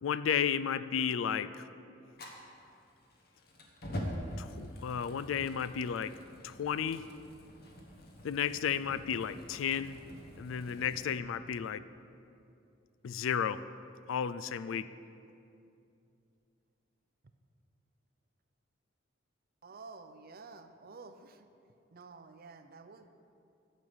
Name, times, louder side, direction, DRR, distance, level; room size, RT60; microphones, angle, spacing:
voice 1, 0.0-1.7 4.4-6.1 6.4-7.0 8.2-10.0 10.4-11.8 13.0-13.6 14.1-14.9, left 8 dB, 80° left, 15 dB, 0.4 m, -33 dB
Fire, 2.1-11.1, equal, 55° left, 1.3 m, -45 dB
voice 2, 19.6-21.5 21.9-23.1, right 4 dB, 50° right, 9 dB, 0.6 m, -51 dB
10.5 x 5.4 x 8.0 m, 2.6 s
head